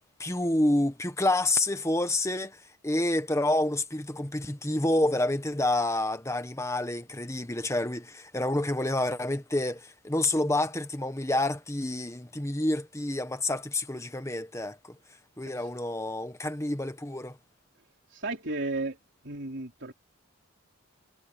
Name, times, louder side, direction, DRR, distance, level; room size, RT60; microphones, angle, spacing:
voice 1, 0.2-15.0 15.4-17.4, left 1 dB, 15° left, 1.3 m, -28 dB
voice 2, 18.1-19.0 19.2-19.9, right 2 dB, 55° right, 3.8 m, -34 dB
head